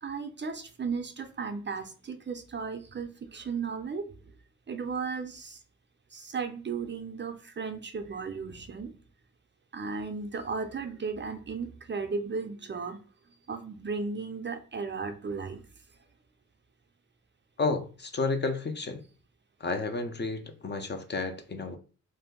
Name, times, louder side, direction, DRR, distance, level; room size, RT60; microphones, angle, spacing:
voice 1, 0.0-4.2 4.7-5.6 6.1-8.9 9.7-13.0 13.5-15.6, right 5 dB, 35° right, 7 dB, 0.5 m, -35 dB
voice 2, 17.6-19.0 19.6-21.8, left 3 dB, 35° left, 6 dB, 0.5 m, -31 dB
2.6 x 2.1 x 3.6 m, 0.37 s
cardioid pair, 55°, 33 cm